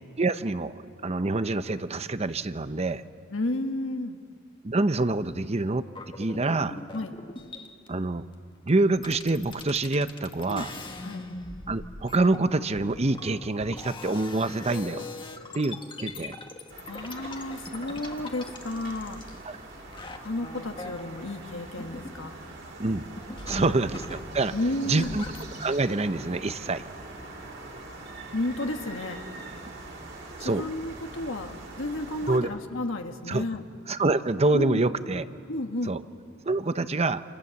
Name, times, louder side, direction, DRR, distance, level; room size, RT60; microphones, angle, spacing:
voice 1, 0.2-3.0 4.6-5.9 6.2-6.8 7.9-8.2 8.7-10.7 11.7-15.1 15.5-16.4 19.4-19.6 22.8-23.1 23.5-24.5 24.8-25.2 25.6-26.8 30.4-30.6 32.3-32.5 33.3-33.4 33.9-35.2 35.9-36.0 36.4-37.2, right 2 dB, 30° right, 12 dB, 0.8 m, -26 dB
voice 2, 3.3-4.2 6.9-7.1 10.5-10.7 11.0-11.2 16.9-19.2 20.2-22.4 23.5-23.7 24.5-25.2 28.3-29.2 30.4-33.6 34.5-34.8 35.5-36.0, left 1 dB, 70° left, 4 dB, 1.5 m, -32 dB
sound 1, 5.9-7.9 8.7-8.8 9.0-19.6 19.9-22.5 22.8-25.6, left 3 dB, 25° left, 1.6 m, -42 dB
sound 2, 16.7-32.4, right 2 dB, 60° right, 5.3 m, -43 dB
28.5 x 28.5 x 7.1 m, 2.3 s
head